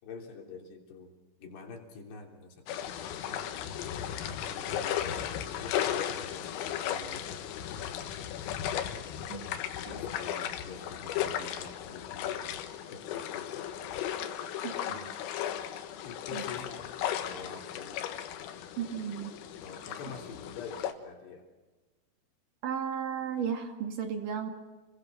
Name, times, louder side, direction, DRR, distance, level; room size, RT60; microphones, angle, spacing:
voice 1, 0.0-3.5 4.3-7.3 9.9-12.4 12.9-13.7 16.0-16.8 17.3-18.0 19.6-21.4, left 5 dB, 55° left, 1 dB, 5.3 m, -46 dB
sound 1, 2.7-20.9, left 10 dB, 85° left, 4.0 m, -36 dB
voice 2, 14.6-15.1 16.3-16.4 18.8-19.3 22.6-24.5, right 7 dB, 50° right, 4 dB, 2.9 m, -35 dB
30.0 x 21.5 x 6.4 m, 1.3 s
omnidirectional pair, 6.0 m